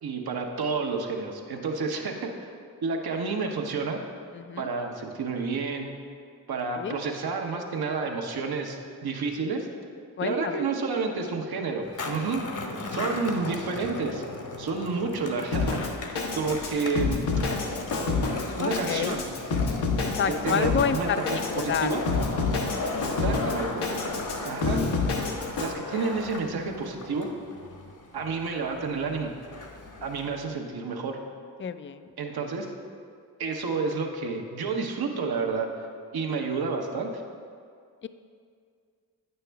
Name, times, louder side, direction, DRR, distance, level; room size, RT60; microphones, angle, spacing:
voice 1, 0.0-2.5 2.8-4.0 4.6-5.9 6.5-9.7 10.2-12.4 12.9-14.2 14.6-15.8 16.4-17.3 18.6-19.3 20.4-21.2 21.6-22.0 23.0-23.8 24.4-24.8 25.6-27.3 28.1-29.3 30.0-31.2 32.2-32.7 33.4-35.7 36.1-37.2, right 4 dB, 65° right, 2 dB, 1.0 m, -30 dB
voice 2, 4.3-4.7 6.8-7.0 10.2-10.6 18.6-19.2 20.0-21.2 21.5-21.9 31.6-32.1 38.0-38.1, left 7 dB, 30° left, 12 dB, 0.4 m, -29 dB
Skateboard, 11.8-30.5, left 3 dB, 50° left, 1.1 m, -37 dB
Drum kit, 15.5-25.7, left 4 dB, 85° left, 1.0 m, -29 dB
9.0 x 6.7 x 3.4 m, 2.2 s
supercardioid pair, 45°, 39 cm